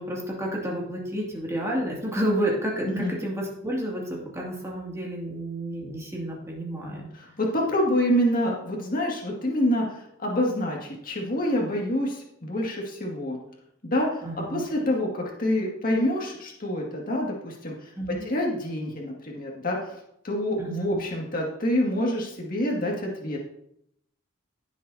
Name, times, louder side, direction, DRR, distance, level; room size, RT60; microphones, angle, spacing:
voice 1, 0.0-7.1 14.2-14.6 18.0-18.3 20.6-21.0, right 1 dB, 15° right, -3 dB, 2.3 m, -30 dB
voice 2, 7.1-13.4 13.8-14.2 14.5-17.9 18.2-19.9 20.2-23.4, left 1 dB, 45° left, -2 dB, 2.1 m, -27 dB
17.0 x 7.4 x 2.8 m, 0.74 s
head